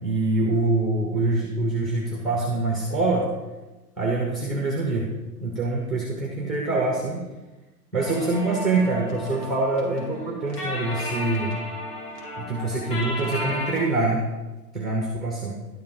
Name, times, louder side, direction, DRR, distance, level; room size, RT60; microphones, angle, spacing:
voice 1, 0.0-3.3 4.0-5.1 5.4-7.2 7.9-11.5 12.4-14.2 14.7-15.5, right 2 dB, ahead, -1 dB, 0.8 m, -25 dB
sound 1, 8.0-13.9, left 1 dB, 70° left, 3.0 m, -34 dB
12.0 x 7.6 x 3.7 m, 1.1 s
hypercardioid pair, 165°, 48 cm